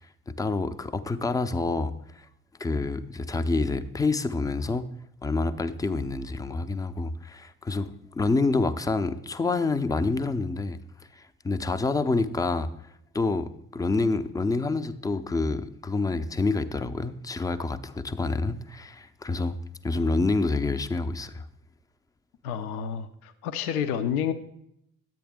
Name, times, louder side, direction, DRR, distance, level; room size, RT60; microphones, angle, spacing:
voice 1, 0.3-2.3 2.6-4.9 5.2-10.8 11.1-12.7 13.1-19.6 19.8-21.5, left 3 dB, 10° left, 0.4 m, -27 dB
voice 2, 22.4-24.3, left 8 dB, 75° left, 0.6 m, -29 dB
10.5 x 8.4 x 3.5 m
figure-of-eight pair, 45°, 44 cm